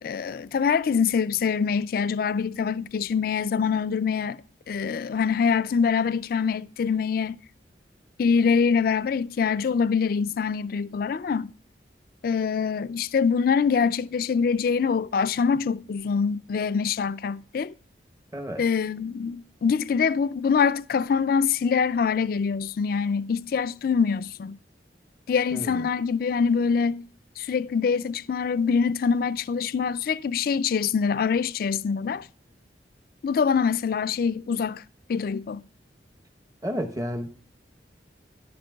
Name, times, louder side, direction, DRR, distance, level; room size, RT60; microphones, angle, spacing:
voice 1, 0.0-4.4 4.7-7.4 8.2-11.5 12.2-17.7 18.6-24.6 25.3-27.0 27.4-32.3 33.2-34.8 35.1-35.6, left 6 dB, 50° left, 0.3 m, -24 dB
voice 2, 18.3-18.6 25.5-25.9 36.6-37.3, equal, 20° right, 0.8 m, -31 dB
12.5 x 11.0 x 2.3 m
head